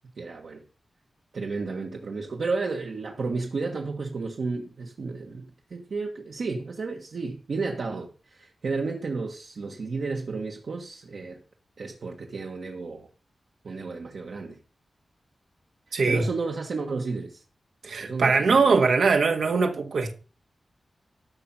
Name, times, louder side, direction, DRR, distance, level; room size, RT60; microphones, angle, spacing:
voice 1, 0.2-0.6 1.3-11.4 11.8-13.1 13.6-14.6 15.9-17.4 18.0-18.9, right 4 dB, 65° right, 1.5 m, -32 dB
voice 2, 15.9-16.2 17.8-20.1, right 4 dB, 85° right, 1.7 m, -21 dB
13.5 x 6.1 x 5.6 m
wide cardioid pair, 130°, 0 cm